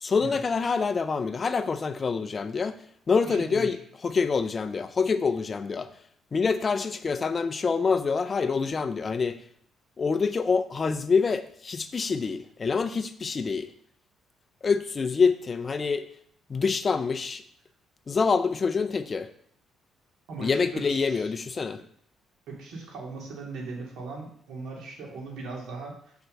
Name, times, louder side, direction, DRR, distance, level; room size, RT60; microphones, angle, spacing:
voice 1, 0.0-2.7 3.1-3.8 4.0-5.9 6.3-9.4 10.0-13.7 14.6-16.0 16.5-17.4 18.1-19.3 20.4-21.8, left 5 dB, 30° left, 11 dB, 0.5 m, -26 dB
voice 2, 3.2-3.8 20.3-21.3 22.5-26.1, right 3 dB, 80° right, -1 dB, 2.7 m, -39 dB
7.1 x 4.5 x 6.6 m, 0.65 s
cardioid pair, 115°, 0 cm